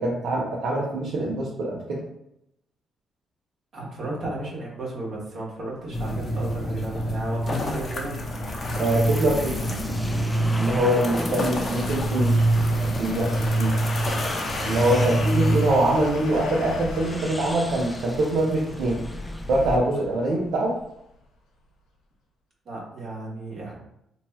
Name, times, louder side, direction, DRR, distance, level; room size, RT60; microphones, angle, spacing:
voice 1, 0.0-2.0 8.8-9.5 10.6-12.4 12.8-13.7 14.6-19.0 19.5-20.7, right 1 dB, 70° right, -4 dB, 0.6 m, -24 dB
voice 2, 3.7-8.1 22.6-23.7, right 2 dB, 55° right, -4 dB, 1.3 m, -34 dB
sound 1, 5.9-15.7, right 1 dB, 40° left, 0.7 m, -26 dB
sound 2, 6.0-20.9 21.2-21.3, left 2 dB, 85° left, 0.7 m, -38 dB
sound 3, 8.8-19.8, left 1 dB, 10° left, 0.4 m, -36 dB
2.9 x 2.3 x 4.2 m, 0.79 s
cardioid pair, 90°, 0 cm